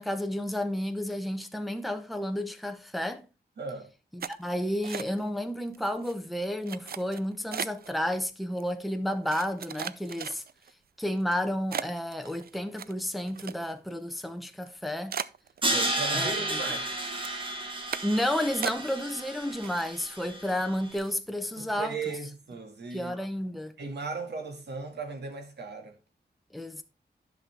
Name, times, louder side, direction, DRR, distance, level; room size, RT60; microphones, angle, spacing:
voice 1, 0.0-3.2 4.1-10.4 11.0-15.2 16.1-16.4 18.0-22.0 22.9-23.7 26.5-26.8, left 1 dB, ahead, 0.7 m, -31 dB
voice 2, 3.6-3.9 15.6-16.9 21.6-23.1 23.8-25.9, right 4 dB, 85° right, 1.9 m, -37 dB
sound 1, 4.2-5.4 5.7-6.1 6.7-7.9 8.6-8.7 9.3-10.7 11.2-11.3 11.7-13.9 14.2-14.3 14.7-14.8 15.1-16.2 16.5-16.9 17.2-17.4 17.9-18.2 18.6-19.2 19.5-20.1 20.5-20.6 20.9-21.2, right 8 dB, 65° right, 0.4 m, -37 dB
Crash cymbal, 15.6-20.7, right 1 dB, 30° right, 1.6 m, -32 dB
10.5 x 5.9 x 3.4 m
wide cardioid pair, 130°, 17 cm